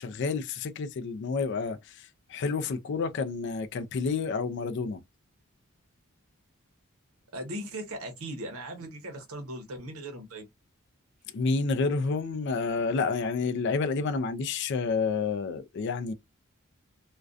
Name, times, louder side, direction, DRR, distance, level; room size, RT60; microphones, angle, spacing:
voice 1, 0.0-5.0 11.3-16.1, left 4 dB, 55° left, 0.3 m, -29 dB
voice 2, 7.3-10.5, right 1 dB, 75° right, 0.7 m, -38 dB
2.4 x 2.2 x 2.4 m
head